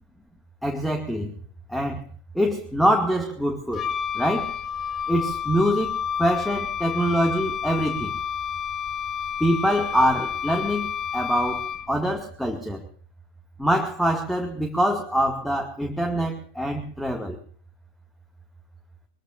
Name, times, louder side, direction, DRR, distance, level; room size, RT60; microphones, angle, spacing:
voice 1, 0.6-1.3 1.7-2.0 2.3-3.8 4.1-4.6 5.1-8.1 9.4-12.9 13.6-17.4, equal, ahead, 2.3 m, -24 dB
Wind instrument woodwind instrument, 3.7-12.1, left 8 dB, 25° left, 1.2 m, -30 dB
24.5 x 22.5 x 2.6 m
figure-of-eight pair, 90°, 0 cm